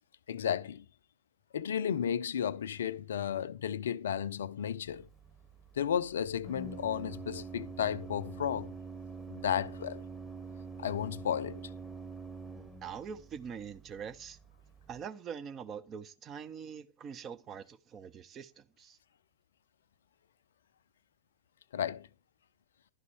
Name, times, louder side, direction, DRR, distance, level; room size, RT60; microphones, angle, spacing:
voice 1, 0.3-0.9 1.5-5.1 5.8-8.7 9.3-10.0 10.8-11.7 21.7-22.1, left 8 dB, 65° left, 0.4 m, -33 dB
Organ, 4.9-15.0, right 4 dB, ahead, 1.2 m, -46 dB
voice 2, 12.8-14.4 14.9-19.0, right 7 dB, 30° right, 0.6 m, -44 dB
11.5 x 4.1 x 4.4 m
figure-of-eight pair, 90°, 0 cm